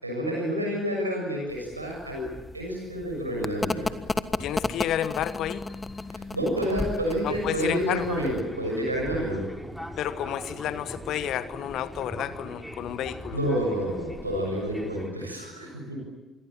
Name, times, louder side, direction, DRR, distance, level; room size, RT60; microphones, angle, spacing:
voice 1, 0.0-2.3 2.5-3.9 6.1-9.5 13.3-16.0, equal, 85° right, 0 dB, 6.9 m, -29 dB
sound 1, 1.5-8.4, left 3 dB, 20° left, 1.5 m, -34 dB
voice 2, 4.4-5.6 7.2-8.1 10.0-13.4, left 11 dB, 55° left, 14 dB, 1.3 m, -31 dB
Fixed-wing aircraft airplane, 7.2-15.1, equal, 5° left, 4.8 m, -40 dB
27.0 x 22.0 x 9.0 m, 1.1 s
figure-of-eight pair, 45°, 0 cm